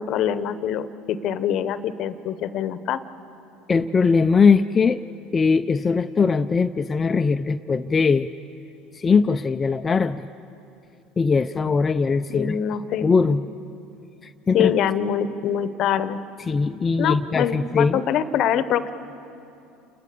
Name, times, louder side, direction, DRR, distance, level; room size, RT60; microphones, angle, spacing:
voice 1, 0.0-3.0 12.3-13.1 14.5-16.2 17.0-18.9, left 9 dB, 55° left, 13 dB, 0.9 m, -24 dB
voice 2, 3.7-5.0 5.3-8.3 8.9-10.3 11.2-12.6 13.0-13.4 14.2-14.7 16.4-18.0, left 5 dB, 25° left, 8 dB, 0.5 m, -20 dB
29.5 x 20.5 x 6.8 m, 2.7 s
hypercardioid pair, 85°, 0 cm